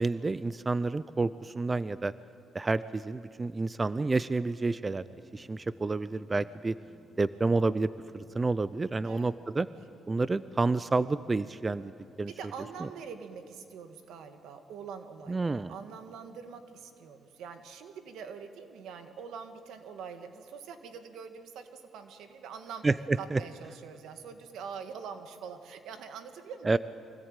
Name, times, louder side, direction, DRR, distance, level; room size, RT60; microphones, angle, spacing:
voice 1, 0.0-2.1 2.5-5.0 5.3-6.8 7.2-9.7 10.1-11.9 12.2-12.3 15.3-15.7 22.8-23.4 26.7-26.8, right 3 dB, 25° right, 16 dB, 0.5 m, -29 dB
A Stalker Takes The Train, 5.0-12.8, left 1 dB, 15° left, 3.6 m, -59 dB
voice 2, 9.0-9.4 12.3-22.8 23.2-26.8, right 6 dB, 80° right, 7 dB, 1.8 m, -44 dB
24.0 x 17.5 x 9.0 m, 2.5 s
cardioid pair, 90°, 0 cm